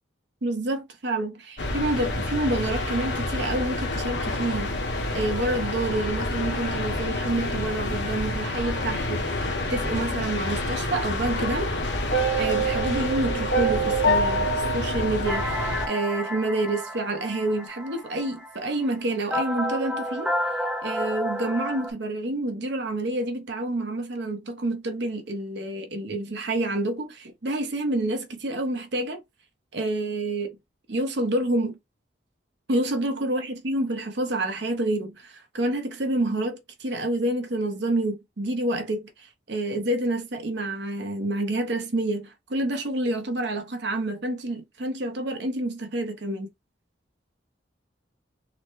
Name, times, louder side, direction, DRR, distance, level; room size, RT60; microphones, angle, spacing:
voice 1, 0.4-4.7 5.1-9.2 9.7-11.7 12.1-15.6 15.9-20.3 20.8-29.2 29.7-30.6 30.9-31.8 32.7-46.5, right 1 dB, 60° right, 0.8 m, -28 dB
sound 1, 1.6-15.9, left 2 dB, 65° left, 0.9 m, -28 dB
sound 2, 12.1-16.3, right 2 dB, 90° left, 1.0 m, -26 dB
sound 3, 15.3-21.9, equal, 5° right, 0.4 m, -31 dB
4.0 x 2.1 x 3.0 m
head